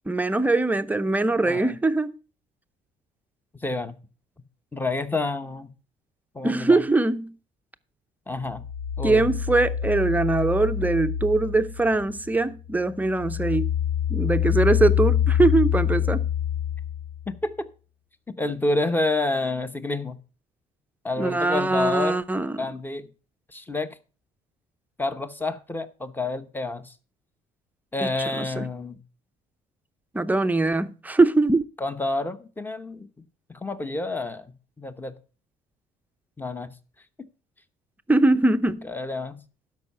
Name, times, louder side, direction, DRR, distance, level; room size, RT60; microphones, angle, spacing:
voice 1, 0.1-2.1 6.4-7.4 9.0-13.7 14.1-16.3 21.2-22.6 28.0-28.1 28.3-28.7 30.1-31.6 38.1-38.9, right 2 dB, 10° right, 0.6 m, -22 dB
voice 2, 1.3-1.8 3.6-4.0 4.7-5.7 6.3-6.8 8.3-8.6 9.0-9.3 17.3-17.7 18.3-20.2 21.0-22.2 22.6-23.1 23.5-24.0 25.0-26.9 27.9-29.0 31.8-33.1 33.5-34.4 34.8-35.1 36.4-36.7 38.8-39.4, left 2 dB, 10° left, 0.9 m, -29 dB
sound 1, 8.5-12.4 12.7-17.3, left 9 dB, 55° left, 0.8 m, -26 dB
12.0 x 5.4 x 5.5 m
cardioid pair, 110°, 17 cm